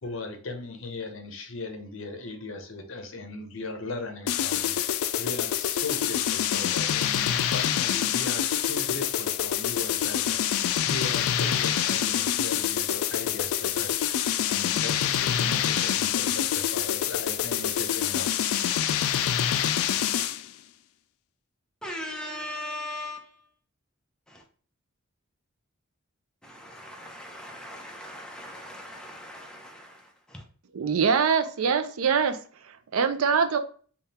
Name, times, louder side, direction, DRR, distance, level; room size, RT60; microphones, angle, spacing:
voice 1, 0.0-4.8 5.2-14.1 14.5-18.3, left 3 dB, 65° left, 5 dB, 0.8 m, -38 dB
sound 1, 4.3-20.5, left 10 dB, 80° left, 0.3 m, -26 dB
voice 2, 21.8-23.3 24.3-24.4 26.4-30.4, left 1 dB, 5° left, 1 dB, 0.7 m, -39 dB
voice 3, 30.7-32.4 32.7-33.6, right 6 dB, 90° right, 9 dB, 0.5 m, -24 dB
3.6 x 2.3 x 4.1 m, 0.43 s
head